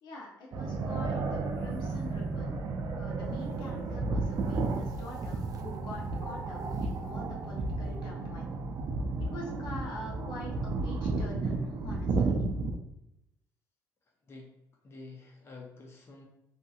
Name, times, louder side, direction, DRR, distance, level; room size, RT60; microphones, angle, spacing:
voice 1, 0.0-2.6 3.0-8.5 9.2-12.4, left 2 dB, 75° left, -1 dB, 0.8 m, -45 dB
sound 1, 0.5-12.8, right 3 dB, 55° right, 0.3 m, -33 dB
voice 2, 14.8-16.3, left 3 dB, 35° left, -1 dB, 0.5 m, -48 dB
2.7 x 2.6 x 2.3 m, 0.85 s
cardioid pair, 90°, 8 cm